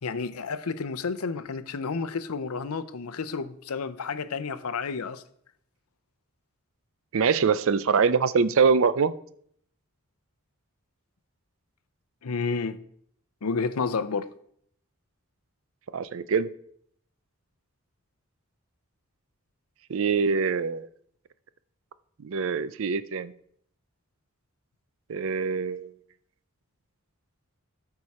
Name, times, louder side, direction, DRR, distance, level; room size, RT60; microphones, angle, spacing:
voice 1, 0.0-5.2 12.2-12.8 13.4-14.3, left 4 dB, 85° left, 0.6 m, -30 dB
voice 2, 7.1-9.1 15.9-16.5 19.9-20.9 22.2-23.3 25.1-25.9, right 5 dB, 65° right, 0.5 m, -24 dB
13.0 x 4.8 x 4.2 m
head